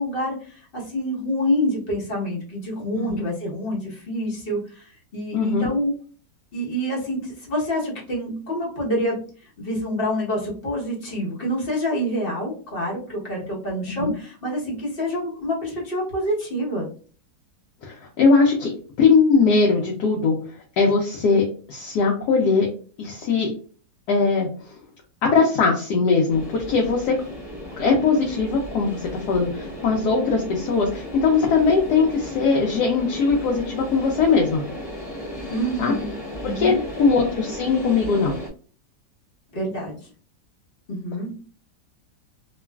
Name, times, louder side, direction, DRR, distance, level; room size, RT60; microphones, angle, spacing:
voice 1, 0.0-5.9 6.5-9.2 9.6-16.9 35.5-36.1 36.4-36.8 39.5-40.0 40.9-41.3, equal, 40° left, -4 dB, 0.9 m, -27 dB
voice 2, 5.3-5.7 14.0-14.1 17.8-18.7 19.0-22.7 23.0-23.5 24.1-24.8 25.2-27.1 27.8-34.6 35.8-35.9 36.4-38.4, left 4 dB, 70° left, 0 dB, 1.1 m, -20 dB
sound 1, 26.3-38.5, equal, 20° left, 0.5 m, -35 dB
2.9 x 2.4 x 2.2 m, 0.41 s
omnidirectional pair, 2.0 m